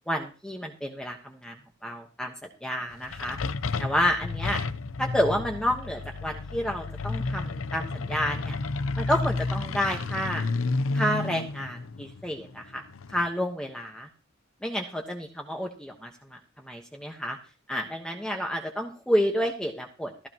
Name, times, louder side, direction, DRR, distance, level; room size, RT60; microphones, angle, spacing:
voice 1, 0.1-3.4 3.8-4.6 5.0-8.6 9.0-10.4 10.9-12.8 13.1-14.1 14.6-17.4 17.7-20.1, equal, 5° left, 1 dB, 1.3 m, -30 dB
sound 1, 2.9-13.3, left 3 dB, 80° left, 0.6 m, -31 dB
15.0 x 13.5 x 3.0 m, 0.34 s
head